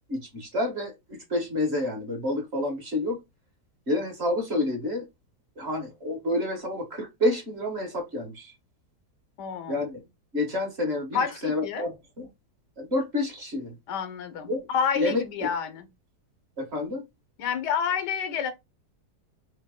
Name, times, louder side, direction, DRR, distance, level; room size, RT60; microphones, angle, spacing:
voice 1, 0.1-3.2 3.9-5.1 5.6-8.5 9.7-10.0 10.3-11.9 12.2-12.3 12.8-13.8 14.5-14.7 14.9-15.5 16.6-17.1, left 1 dB, 45° right, 1.2 m, -29 dB
voice 2, 9.4-9.8 11.1-11.9 13.9-15.9 17.4-18.5, left 7 dB, 80° left, 1.3 m, -29 dB
3.3 x 2.8 x 3.5 m
omnidirectional pair, 1.8 m